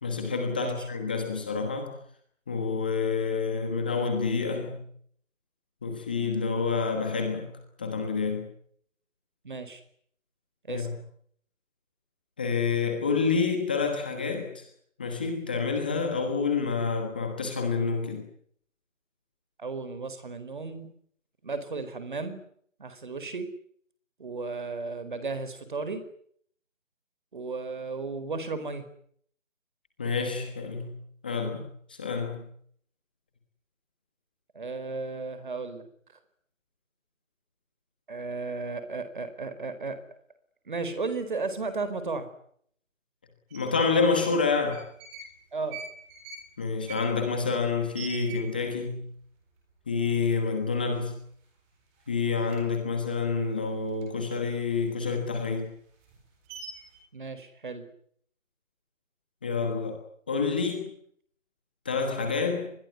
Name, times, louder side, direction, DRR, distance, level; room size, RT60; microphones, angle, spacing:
voice 1, 0.0-1.9 2.5-4.8 5.8-7.5 7.8-8.5 10.7-10.9 12.4-14.6 15.0-18.3 30.0-31.0 31.2-32.5 43.5-44.9 46.6-49.1 49.9-51.1 52.1-55.7 59.4-60.0 60.3-60.9 61.8-62.7, left 5 dB, 5° left, 4 dB, 1.2 m, -28 dB
voice 2, 9.4-9.8 10.7-10.9 19.6-20.9 21.4-22.4 22.8-23.5 24.2-26.0 27.3-28.8 34.5-35.9 38.1-40.0 40.7-42.3 45.5-45.8 57.1-57.8, right 3 dB, 40° right, 11 dB, 4.6 m, -34 dB
sound 1, 43.5-43.6 44.5-45.3 45.6-48.9 49.2-49.3 49.5-50.0 50.5-50.6 50.9-51.7 52.0-54.3 54.7-57.0, right 5 dB, 10° right, 3.9 m, -45 dB
25.0 x 21.0 x 9.6 m, 0.65 s
figure-of-eight pair, 165°, 38 cm